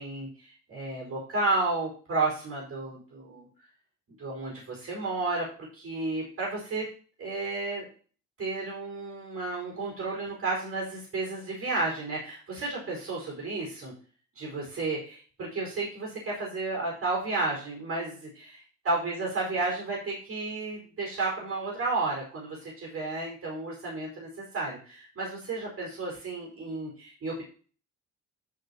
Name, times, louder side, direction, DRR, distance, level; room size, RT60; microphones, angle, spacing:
voice 1, 0.0-3.5 4.2-6.9 7.2-7.9 8.4-13.9 14.3-27.4, right 3 dB, 50° right, -3 dB, 4.9 m, -32 dB
15.0 x 5.2 x 2.9 m, 0.40 s
cardioid pair, 90°, 30 cm